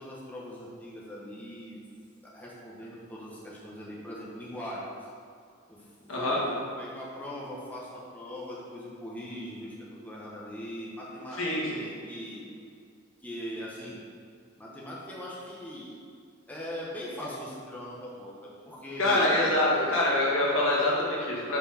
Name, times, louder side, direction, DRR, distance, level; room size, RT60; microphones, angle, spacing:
voice 1, 0.0-1.8 2.2-5.1 5.7-9.8 10.0-12.4 13.2-14.0 14.6-16.0 16.5-19.4 19.7-19.8, equal, 10° left, -6 dB, 1.0 m, -40 dB
voice 2, 11.3-11.7 19.0-21.6, left 1 dB, 70° left, -5 dB, 1.8 m, -25 dB
5.8 x 4.6 x 5.6 m, 2.3 s
head